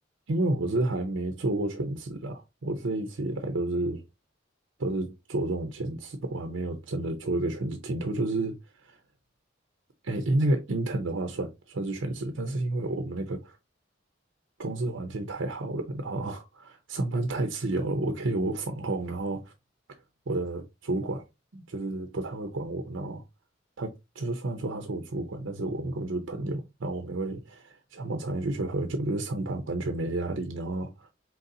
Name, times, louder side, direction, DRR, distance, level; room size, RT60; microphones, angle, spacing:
voice 1, 0.3-4.0 4.8-9.0 10.0-13.6 14.6-19.5 20.3-21.3 21.5-23.2 23.8-31.1, right 2 dB, 80° right, 0.7 m, -31 dB
4.5 x 4.0 x 2.7 m
head